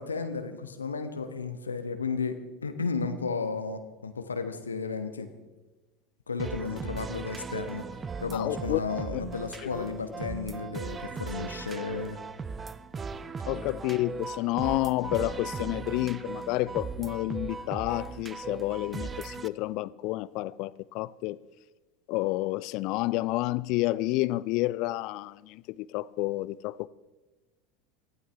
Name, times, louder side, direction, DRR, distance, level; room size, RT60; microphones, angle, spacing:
voice 1, 0.0-5.3 6.3-7.8 8.2-12.2, left 4 dB, 80° left, 1.2 m, -33 dB
sound 1, 6.4-19.5, right 5 dB, 20° right, 0.6 m, -38 dB
voice 2, 8.3-8.8 9.1-9.2 13.5-21.4 22.1-26.9, left 18 dB, 50° left, 0.4 m, -30 dB
24.0 x 15.5 x 3.5 m
figure-of-eight pair, 75°, 0 cm